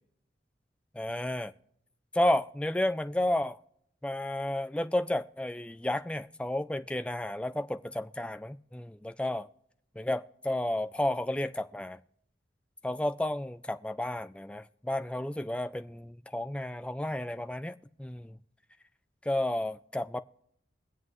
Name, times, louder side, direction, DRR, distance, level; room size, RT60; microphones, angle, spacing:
voice 1, 0.9-1.5 2.1-3.6 4.0-9.5 10.0-12.0 12.8-18.4 19.3-20.2, left 1 dB, 5° left, 0.4 m, -32 dB
22.5 x 7.8 x 3.1 m
head